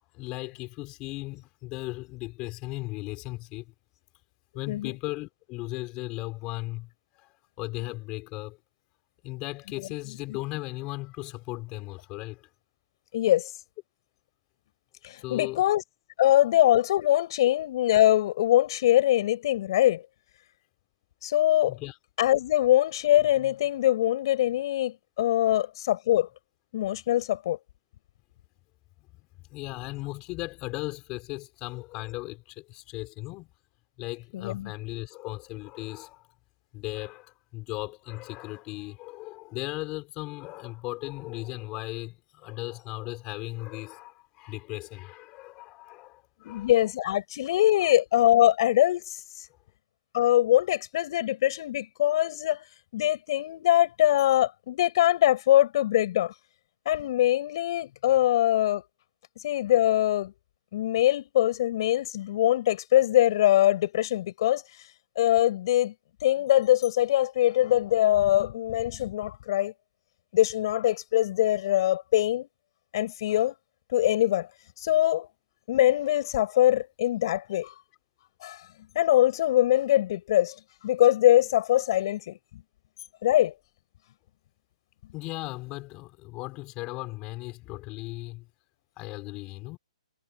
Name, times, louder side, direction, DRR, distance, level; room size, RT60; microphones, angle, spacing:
voice 1, 0.1-3.7 4.5-6.9 7.2-7.3 7.6-8.6 9.2-12.5 15.2-15.6 21.7-22.0 29.5-33.5 34.0-36.3 36.7-46.7 47.8-47.9 85.1-88.5 89.0-89.8, left 21 dB, 25° left, 5.6 m, -37 dB
voice 2, 13.1-13.5 15.0-15.8 16.2-20.0 21.2-21.8 22.2-26.3 26.7-27.6 34.3-34.7 46.4-49.2 50.1-52.6 52.9-56.3 56.8-58.8 59.4-60.3 60.7-64.6 65.2-65.9 66.2-69.7 70.3-72.5 72.9-73.5 73.9-74.5 74.8-75.3 75.7-77.7 78.4-78.6 78.9-80.5 80.8-82.4 83.2-83.5, left 13 dB, 45° left, 6.5 m, -23 dB
hypercardioid pair, 155°, 4 cm